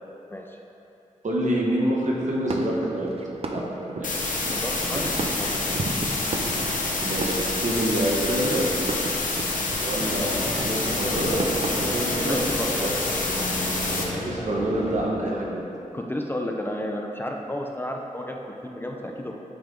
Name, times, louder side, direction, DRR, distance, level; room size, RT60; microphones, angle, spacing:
voice 1, 0.3-0.6 4.5-5.1 5.4-6.3 12.2-12.9 15.9-19.3, left 1 dB, 15° left, 1 dB, 0.4 m, -32 dB
voice 2, 1.2-3.1 3.5-4.1 7.0-8.7 9.8-12.9 13.9-15.7, right 1 dB, 65° right, -3 dB, 1.1 m, -27 dB
sound 1, 2.2-11.8, right 3 dB, 45° right, 0.5 m, -34 dB
sound 2, 4.0-14.0, left 3 dB, 75° left, 0.8 m, -27 dB
sound 3, 10.0-15.0, left 1 dB, 50° left, 1.0 m, -33 dB
8.8 x 3.4 x 3.8 m, 2.8 s
wide cardioid pair, 90°, 14 cm